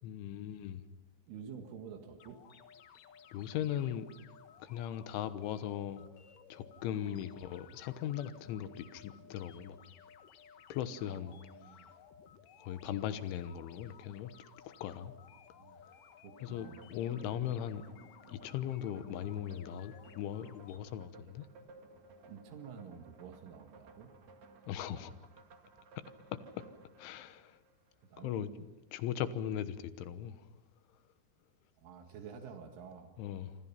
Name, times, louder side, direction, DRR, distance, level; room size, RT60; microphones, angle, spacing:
voice 1, 0.0-0.8 3.3-4.1 4.6-6.1 6.5-9.8 10.7-11.3 12.6-14.3 14.7-15.1 16.4-17.8 18.3-21.5 24.7-25.1 26.3-26.6 27.0-27.6 28.2-30.5 33.2-33.5, left 10 dB, 80° left, 3.5 m, -39 dB
voice 2, 1.3-2.4 7.0-7.3 11.0-11.9 15.6-15.8 16.2-16.8 22.3-24.1 28.1-28.5 31.8-33.2, right 6 dB, 80° right, 4.4 m, -49 dB
sound 1, 2.2-20.8, left 8 dB, 65° left, 2.3 m, -58 dB
sound 2, 16.4-28.1, right 3 dB, 50° right, 2.5 m, -58 dB
27.5 x 25.5 x 5.8 m
omnidirectional pair, 5.5 m